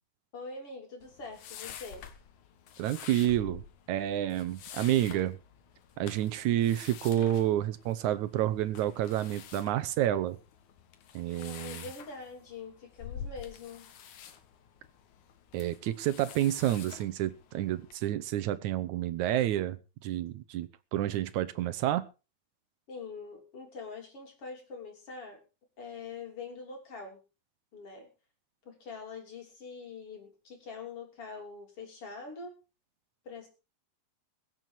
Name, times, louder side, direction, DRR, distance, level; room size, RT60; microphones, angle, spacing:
voice 1, 0.3-2.0 11.4-13.9 22.9-25.4 25.8-27.2 27.7-28.1 28.7-32.5 33.2-33.5, left 4 dB, 45° left, 3 dB, 4.1 m, -44 dB
sound 1, 1.0-18.0, left 8 dB, 75° left, 2.8 m, -48 dB
voice 2, 2.8-3.6 3.9-5.4 6.0-10.4 11.2-11.8 15.5-22.1, right 12 dB, 75° right, 12 dB, 2.2 m, -29 dB
22.5 x 7.7 x 4.5 m, 0.32 s
omnidirectional pair, 3.5 m